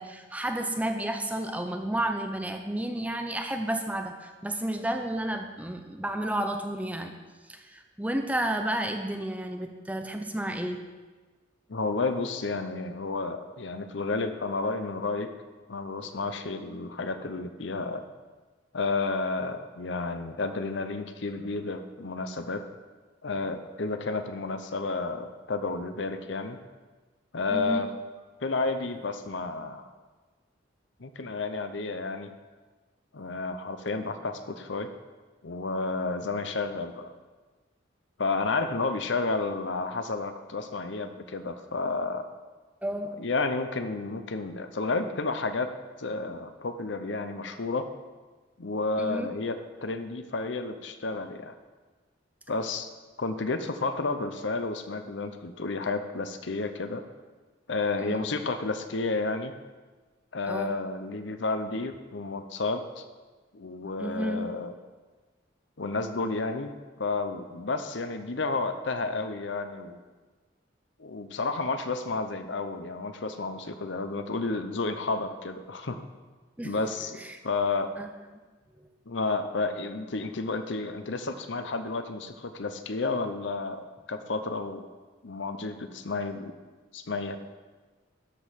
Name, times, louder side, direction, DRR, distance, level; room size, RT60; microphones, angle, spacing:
voice 1, 0.0-7.2 7.5-10.8 27.5-27.9 42.8-43.2 49.0-49.3 58.0-58.2 60.5-60.7 64.0-64.5 76.6-76.8 77.2-77.4 78.0-78.1, right 1 dB, 10° right, 4 dB, 0.6 m, -31 dB
voice 2, 11.7-15.3 15.7-18.0 18.7-22.7 23.2-26.6 27.3-27.9 28.4-29.8 31.0-32.3 33.1-34.9 35.4-37.1 38.2-42.3 43.2-47.9 48.6-51.5 52.5-52.9 53.2-57.0 57.7-59.5 60.3-63.0 63.5-64.7 65.8-66.7 67.0-70.0 71.0-76.0 76.6-77.9 79.1-84.9 85.2-86.5 86.9-87.4, left 3 dB, 70° left, 9 dB, 0.8 m, -31 dB
12.5 x 5.3 x 5.8 m, 1.3 s
head